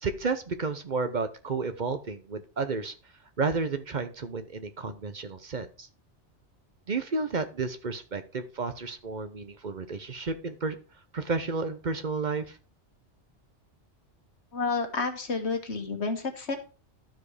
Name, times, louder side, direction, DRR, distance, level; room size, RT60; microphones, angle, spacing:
voice 1, 0.0-2.9 3.4-5.9 6.9-10.8 11.1-12.6, right 4 dB, 45° right, 10 dB, 0.9 m, -31 dB
voice 2, 14.5-16.6, left 4 dB, 65° left, 6 dB, 1.8 m, -30 dB
12.0 x 4.9 x 4.9 m, 0.35 s
omnidirectional pair, 1.2 m